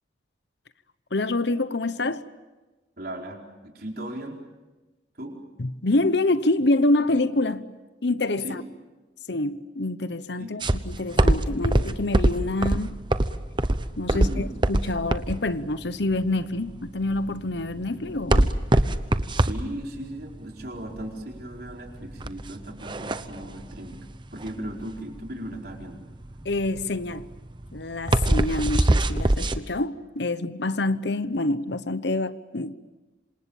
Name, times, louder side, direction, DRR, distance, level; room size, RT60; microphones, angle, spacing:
voice 1, 1.1-2.2 5.6-7.6 8.0-8.6 9.3-13.0 14.0-18.6 26.4-27.3 27.7-32.7, left 2 dB, 65° left, 1.0 m, -26 dB
voice 2, 3.0-4.4 5.1-5.4 8.4-8.5 10.4-10.5 14.1-14.4 19.4-24.0 24.3-26.0, right 1 dB, 55° right, 4.7 m, -37 dB
sound 1, 10.6-29.6, right 1 dB, 25° right, 0.9 m, -24 dB
27.5 x 26.5 x 7.3 m
head